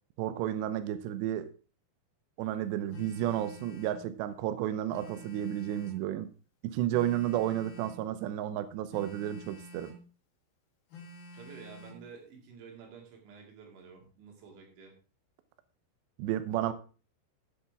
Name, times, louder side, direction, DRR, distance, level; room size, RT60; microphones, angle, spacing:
voice 1, 0.2-1.5 2.4-6.3 6.6-9.9 16.2-16.7, right 12 dB, 90° right, 12 dB, 2.4 m, -32 dB
Telephone, 2.9-4.0 4.9-6.1 6.9-8.1 8.9-10.0 10.9-12.0, equal, 50° left, 3.7 m, -49 dB
voice 2, 11.4-14.9, right 6 dB, 65° right, 1 dB, 4.7 m, -50 dB
15.0 x 7.3 x 3.5 m, 0.36 s
omnidirectional pair, 6.0 m